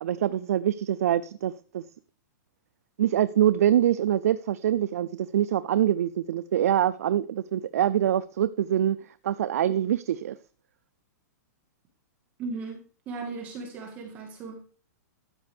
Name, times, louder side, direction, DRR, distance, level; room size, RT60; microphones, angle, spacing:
voice 1, 0.0-1.8 3.0-9.0 9.2-10.4, right 11 dB, 55° right, 0.4 m, -24 dB
voice 2, 12.4-12.8 13.0-14.6, right 4 dB, 15° right, 1.6 m, -36 dB
13.0 x 9.5 x 3.4 m
hypercardioid pair, 180°, 9 cm